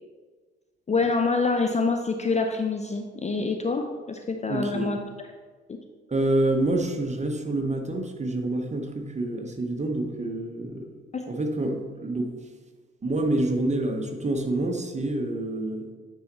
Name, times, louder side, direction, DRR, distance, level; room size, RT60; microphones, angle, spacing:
voice 1, 0.9-5.0 11.1-11.2, left 4 dB, 20° left, 4 dB, 0.5 m, -26 dB
voice 2, 4.5-4.9 6.1-10.9 11.3-12.3 13.0-15.9, right 2 dB, 20° right, 3 dB, 1.1 m, -27 dB
9.2 x 4.5 x 3.0 m, 1.4 s
hypercardioid pair, 45°, 30 cm